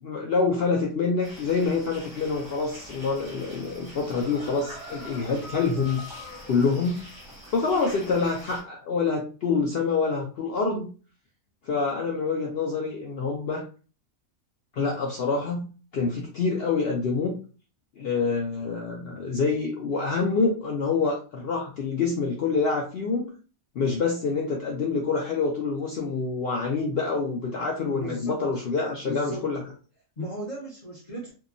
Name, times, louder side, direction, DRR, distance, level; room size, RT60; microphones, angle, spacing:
voice 1, 0.0-6.0 6.5-7.0 7.5-10.9 11.6-13.6 14.7-17.4 18.0-23.3 23.8-29.6, left 4 dB, 75° left, 0 dB, 0.5 m, -26 dB
sound 1, 1.2-8.6, equal, 25° right, 0.7 m, -43 dB
voice 2, 27.7-28.4 29.0-29.5 30.2-31.3, left 1 dB, 40° left, -6 dB, 0.8 m, -36 dB
2.8 x 2.2 x 2.5 m, 0.37 s
omnidirectional pair, 1.5 m